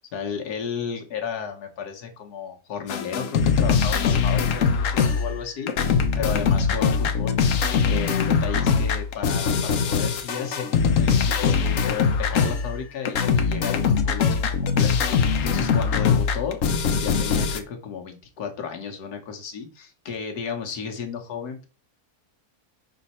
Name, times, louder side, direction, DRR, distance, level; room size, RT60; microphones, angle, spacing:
voice 1, 0.1-7.6 7.9-21.7, left 6 dB, 85° left, 4 dB, 1.6 m, -33 dB
sound 1, 2.9-5.4 5.7-12.8 13.1-17.6, left 6 dB, 65° left, 1.0 m, -22 dB
5.5 x 4.0 x 4.2 m, 0.35 s
omnidirectional pair, 1.6 m